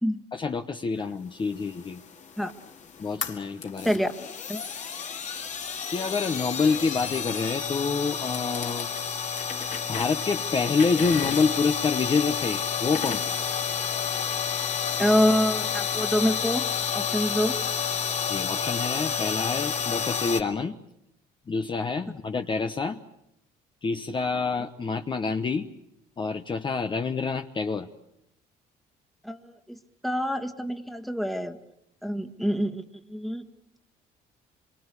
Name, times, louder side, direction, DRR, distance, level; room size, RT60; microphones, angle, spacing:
voice 1, 0.3-2.0 3.0-4.0 5.9-8.9 9.9-13.3 18.2-20.8 21.5-23.0 23.8-25.7 26.2-27.9, left 4 dB, 30° left, 6 dB, 1.0 m, -27 dB
sound 1, 1.6-20.4, left 7 dB, 45° left, 2.3 m, -30 dB
voice 2, 15.0-16.7 16.9-17.6 29.2-29.8 30.0-31.6 32.0-32.8 33.1-33.5, equal, ahead, 6 dB, 1.7 m, -26 dB
26.0 x 24.0 x 8.4 m, 0.78 s
cardioid pair, 110°, 17 cm